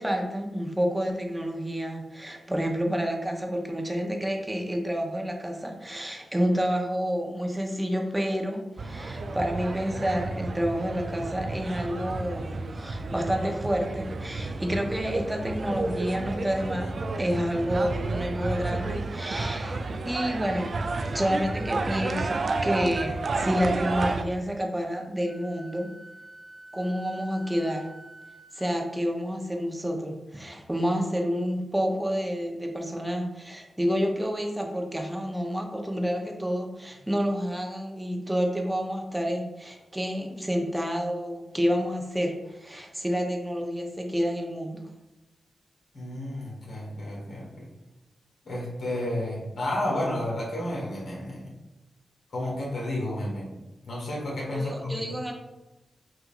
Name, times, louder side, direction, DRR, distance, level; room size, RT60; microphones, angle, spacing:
voice 1, 0.0-20.7 21.0-25.9 26.7-27.8 28.5-44.8 54.5-55.3, equal, 15° right, 2 dB, 0.9 m, -29 dB
sound 1, 8.8-24.2, right 3 dB, 60° right, 0.3 m, -31 dB
Wind instrument woodwind instrument, 25.3-28.8, right 1 dB, 15° left, 1.4 m, -48 dB
voice 2, 45.9-47.7 48.4-51.5 52.3-53.6 53.8-55.0, left 1 dB, 75° left, -4 dB, 1.3 m, -31 dB
5.9 x 2.6 x 2.5 m, 1.0 s
supercardioid pair, 40°, 0 cm